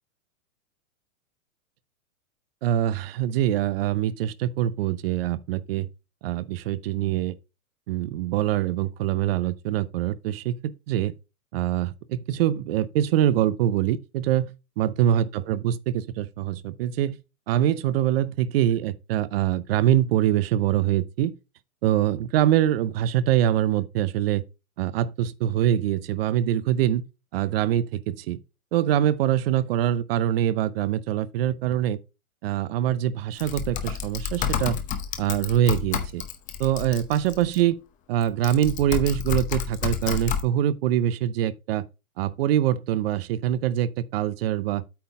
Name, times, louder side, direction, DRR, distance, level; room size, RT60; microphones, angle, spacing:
voice 1, 2.6-5.9 6.2-7.4 7.9-11.1 11.5-17.2 17.5-21.3 21.8-24.4 24.8-27.0 27.3-28.4 28.7-32.0 32.4-34.8 35.2-36.2 36.6-37.8 38.1-41.8 42.2-44.8, right 11 dB, 40° right, 0.6 m, -24 dB
Typing, 33.4-37.6 38.2-40.4, left 8 dB, 20° left, 0.7 m, -30 dB
8.6 x 3.8 x 4.9 m
hypercardioid pair, 140°, 44 cm